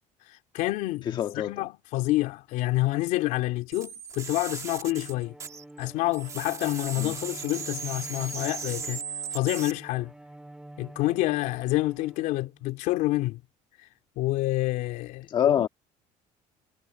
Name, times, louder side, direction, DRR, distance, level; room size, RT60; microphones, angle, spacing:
voice 1, 0.3-5.3 5.8-9.0 9.3-10.1 10.8-13.4 13.8-13.9 14.2-15.7, left 18 dB, 70° left, 3.2 m, -28 dB
voice 2, 1.2-1.7 7.0-7.1 15.3-15.7, left 9 dB, 35° left, 1.7 m, -25 dB
sound 1, 3.7-5.9 6.1-9.7, right 6 dB, 20° right, 1.9 m, -37 dB
Bowed string instrument, 4.5-12.9, right 1 dB, 5° right, 3.8 m, -48 dB
cardioid pair, 180°, 14 cm